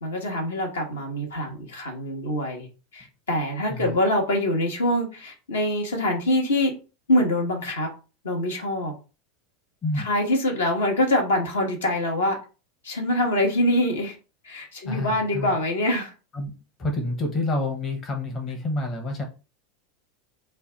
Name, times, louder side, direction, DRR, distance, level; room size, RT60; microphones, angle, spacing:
voice 1, 0.0-2.7 2.9-6.7 7.1-7.9 8.2-8.9 10.0-12.4 12.8-14.1 14.4-16.1, left 1 dB, 75° left, 1.1 m, -24 dB
voice 2, 9.8-10.1 14.9-15.5 16.3-16.5 16.8-19.2, left 2 dB, 30° left, 0.9 m, -28 dB
3.1 x 2.3 x 3.9 m
figure-of-eight pair, 85°, 0 cm